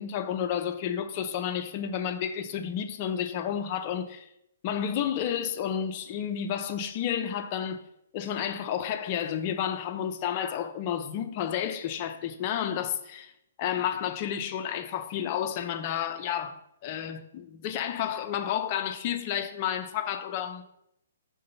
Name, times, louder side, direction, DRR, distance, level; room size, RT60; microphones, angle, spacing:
voice 1, 0.0-4.3 4.6-7.8 8.1-13.3 13.6-20.6, left 9 dB, 35° left, 0.6 m, -31 dB
5.5 x 3.8 x 5.5 m
hypercardioid pair, 150°, 0 cm